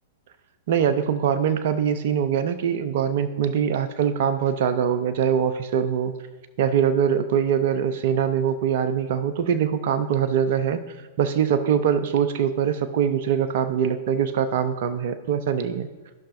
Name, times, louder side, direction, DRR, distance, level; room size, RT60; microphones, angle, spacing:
voice 1, 0.7-6.1 6.6-10.8 11.2-15.9, right 8 dB, 55° right, 11 dB, 0.6 m, -23 dB
14.5 x 5.7 x 2.5 m, 1.2 s
figure-of-eight pair, 105°, 0 cm